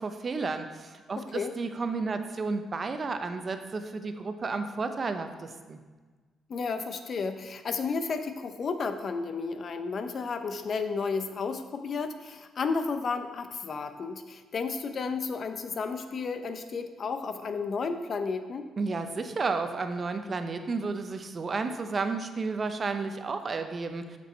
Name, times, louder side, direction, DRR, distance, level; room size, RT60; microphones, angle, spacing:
voice 1, 0.0-5.8 18.8-24.2, right 4 dB, 40° right, 7 dB, 0.7 m, -32 dB
voice 2, 1.2-1.5 6.5-18.7, left 4 dB, 50° left, 8 dB, 0.7 m, -32 dB
7.0 x 6.1 x 4.3 m, 1.4 s
cardioid pair, 90°, 0 cm